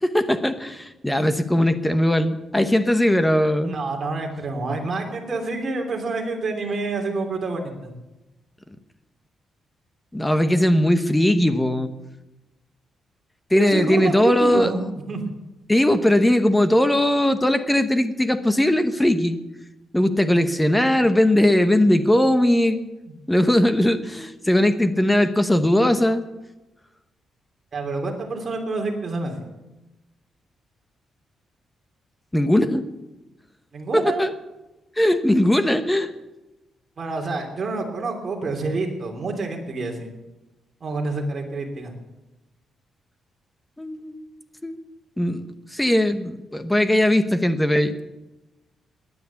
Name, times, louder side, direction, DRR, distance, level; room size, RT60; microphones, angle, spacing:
voice 1, 0.0-3.8 10.1-11.9 13.5-14.7 15.7-19.4 19.9-22.8 23.3-26.2 32.3-32.9 33.9-34.3 35.0-36.1 43.8-44.2 44.6-44.8 45.2-45.4 45.7-48.0, left 1 dB, 5° left, 10 dB, 1.0 m, -19 dB
voice 2, 3.6-7.9 13.5-15.2 23.1-23.2 27.7-29.5 33.7-34.2 37.0-40.1 40.8-41.9, right 3 dB, 35° right, 2 dB, 3.1 m, -28 dB
18.5 x 10.5 x 7.0 m, 1.0 s
cardioid pair, 155°, 0 cm